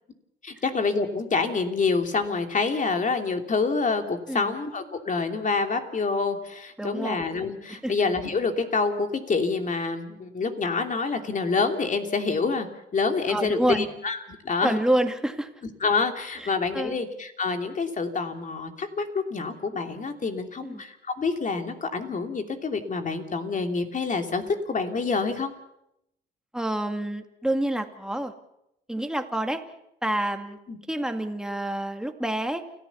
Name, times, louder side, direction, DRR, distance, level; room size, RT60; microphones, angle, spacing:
voice 1, 0.4-12.7 12.9-14.2 14.4-14.8 15.8-25.5 30.7-30.8, left 4 dB, 40° left, 5 dB, 2.9 m, -27 dB
voice 2, 6.8-7.2 7.7-7.9 13.3-13.8 14.6-15.5 16.4-17.0 20.6-20.8 26.5-28.3 28.9-29.6 30.0-30.6 30.9-32.6, right 1 dB, 5° right, 5 dB, 2.2 m, -28 dB
29.0 x 14.5 x 7.1 m, 0.81 s
cardioid pair, 90°, 20 cm